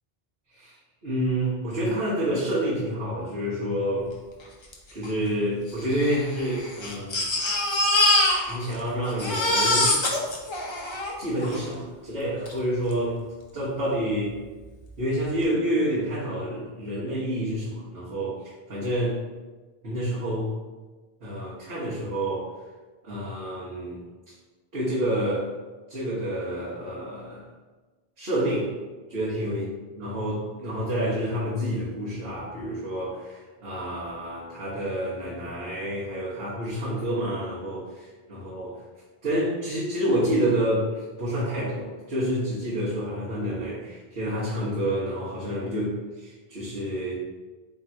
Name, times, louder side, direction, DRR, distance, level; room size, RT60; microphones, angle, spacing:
voice 1, 1.0-4.1 4.9-7.2 8.5-10.0 11.2-13.2 13.5-14.3 15.0-19.2 19.8-20.5 21.2-22.5 23.0-24.0 24.7-25.5 25.9-27.4 28.2-28.7 29.1-29.6 30.0-38.8 39.2-47.1, equal, 85° right, -10 dB, 1.4 m, -28 dB
Crying sobbing, 4.7-4.8 5.0-5.1 5.9-8.8 9.1-11.6 12.5-12.6 12.9-13.0, left 1 dB, 30° left, 0.6 m, -24 dB
3.6 x 3.1 x 4.3 m, 1.3 s
omnidirectional pair, 1.0 m